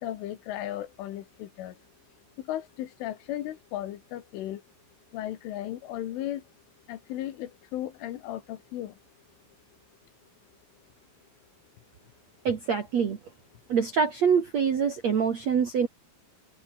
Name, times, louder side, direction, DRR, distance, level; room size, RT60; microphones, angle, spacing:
voice 1, 0.0-1.8 2.4-4.6 5.1-6.4 6.9-8.9, left 13 dB, 75° left, 4.0 m, -35 dB
voice 2, 12.4-13.2 13.7-15.9, right 6 dB, 55° right, 2.0 m, -25 dB
omnidirectional pair, 5.9 m